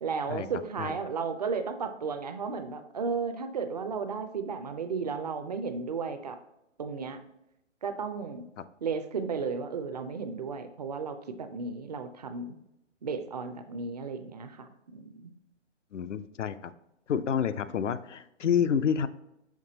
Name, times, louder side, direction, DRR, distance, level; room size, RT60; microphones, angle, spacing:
voice 1, 0.0-6.4 6.8-7.2 7.8-8.5 8.8-12.6 13.0-15.3, right 5 dB, 35° right, 8 dB, 0.4 m, -34 dB
voice 2, 15.9-16.7 17.1-19.1, left 7 dB, 75° left, 12 dB, 0.6 m, -28 dB
5.9 x 5.8 x 2.8 m, 0.85 s
hypercardioid pair, 140°, 36 cm